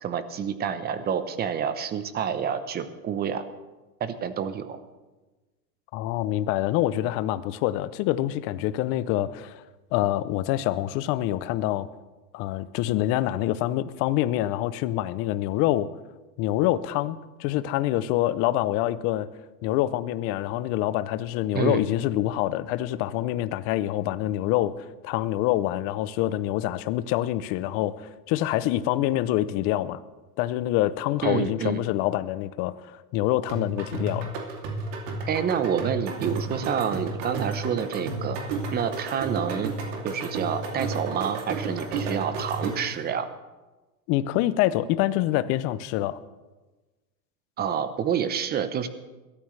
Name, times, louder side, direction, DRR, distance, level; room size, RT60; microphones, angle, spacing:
voice 1, 0.0-3.4 4.0-4.8 21.5-21.8 31.2-31.8 35.3-38.4 38.7-39.7 40.0-43.3 47.6-48.9, right 8 dB, 20° right, 12 dB, 0.8 m, -28 dB
voice 2, 5.9-9.6 9.9-11.9 12.3-15.9 16.4-19.3 19.6-30.0 30.4-34.3 44.1-46.2, left 14 dB, 30° left, 15 dB, 0.5 m, -26 dB
sound 1, 33.5-43.0, right 3 dB, 50° right, 2.7 m, -32 dB
21.5 x 13.0 x 3.2 m, 1.2 s
hypercardioid pair, 130°, 48 cm